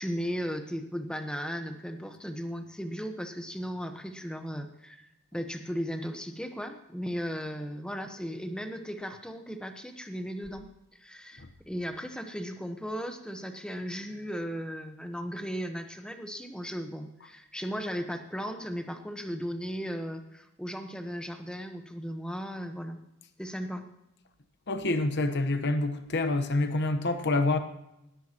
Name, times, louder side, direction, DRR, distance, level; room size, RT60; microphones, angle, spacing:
voice 1, 0.0-10.7 10.9-23.0 23.4-23.9, equal, 5° left, 1.1 m, -36 dB
voice 2, 24.7-27.6, left 2 dB, 50° left, 1.1 m, -27 dB
18.5 x 13.5 x 3.0 m
head